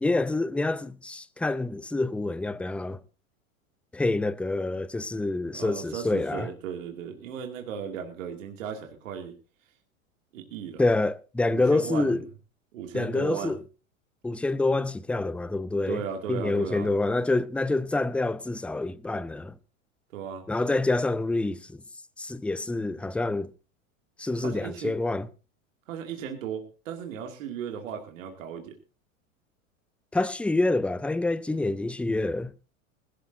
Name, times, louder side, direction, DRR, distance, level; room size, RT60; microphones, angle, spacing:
voice 1, 0.0-3.0 3.9-6.5 10.8-12.2 12.9-13.6 14.2-16.0 16.3-19.5 20.5-21.8 22.2-23.5 24.2-25.3 30.1-32.5, left 2 dB, 5° left, 0.6 m, -27 dB
voice 2, 5.4-9.3 10.3-10.8 11.5-12.2 12.7-13.6 15.9-16.9 20.1-20.4 24.3-24.9 25.9-28.7, right 7 dB, 65° right, 2.6 m, -36 dB
20.5 x 13.0 x 2.7 m
hypercardioid pair, 95°, 41 cm